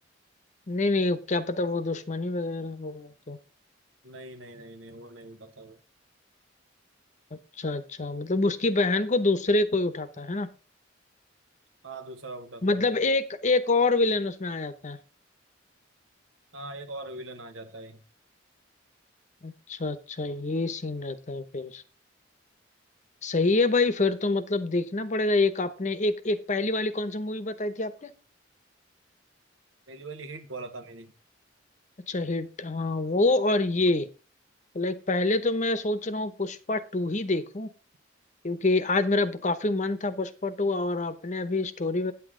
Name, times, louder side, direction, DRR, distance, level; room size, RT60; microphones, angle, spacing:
voice 1, 0.7-3.4 7.3-10.5 12.6-15.0 19.4-21.8 23.2-28.1 32.1-34.1 34.7-37.7 38.4-42.1, left 2 dB, 40° left, 0.8 m, -26 dB
voice 2, 4.0-5.8 11.8-12.9 16.5-18.0 29.9-31.1, right 2 dB, 85° right, 1.3 m, -41 dB
9.2 x 8.2 x 3.7 m
head